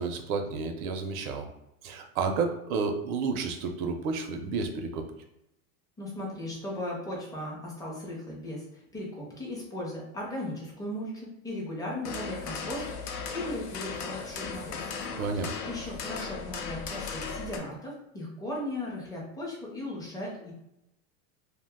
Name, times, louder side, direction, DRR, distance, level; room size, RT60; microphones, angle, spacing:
voice 1, 0.0-1.5 1.8-5.1 15.2-15.5, right 4 dB, 65° right, 6 dB, 0.6 m, -31 dB
voice 2, 6.0-20.5, left 1 dB, 10° left, -4 dB, 0.5 m, -37 dB
sound 1, 12.0-17.6, left 5 dB, 90° left, 0.7 m, -37 dB
2.4 x 2.1 x 3.4 m, 0.85 s
supercardioid pair, 145°, 45 cm